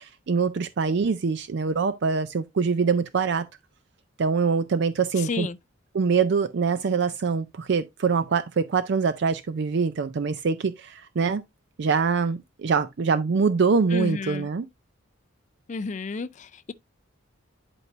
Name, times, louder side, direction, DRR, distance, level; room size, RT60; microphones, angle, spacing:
voice 1, 0.0-3.5 4.2-5.5 5.9-11.4 11.8-14.7, right 5 dB, 55° right, 0.4 m, -24 dB
voice 2, 5.2-5.6 13.9-14.5 15.7-16.7, left 4 dB, 35° left, 0.4 m, -31 dB
11.0 x 4.6 x 2.5 m
head